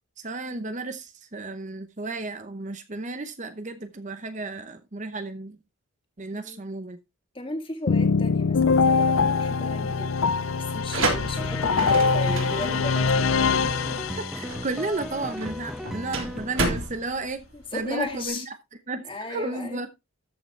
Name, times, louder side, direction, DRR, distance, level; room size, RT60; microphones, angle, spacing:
voice 1, 0.2-5.6 6.2-7.0 14.3-17.4 17.7-18.6 18.9-19.9, right 2 dB, 35° right, 0.8 m, -33 dB
voice 2, 6.3-6.6 7.3-13.0 13.3-13.5 17.5-18.4 19.0-19.8, left 2 dB, 25° left, 2.3 m, -35 dB
sound 1, 7.9-14.6, left 4 dB, 70° left, 0.6 m, -23 dB
sound 2, 10.7-18.3, right 2 dB, 65° right, 3.6 m, -32 dB
sound 3, 11.4-16.7, equal, ahead, 0.9 m, -36 dB
13.5 x 6.8 x 3.2 m
head